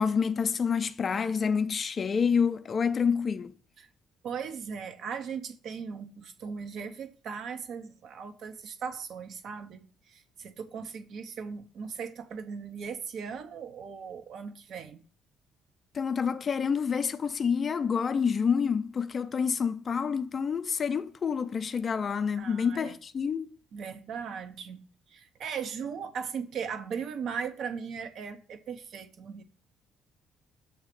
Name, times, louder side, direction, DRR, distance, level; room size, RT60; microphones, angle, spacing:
voice 1, 0.0-3.5 15.9-23.6, left 6 dB, 40° left, 0.4 m, -28 dB
voice 2, 4.2-15.0 22.4-22.9 23.7-24.8 25.1-29.4, right 6 dB, 55° right, 0.7 m, -38 dB
7.1 x 3.2 x 5.1 m
figure-of-eight pair, 50°, 0 cm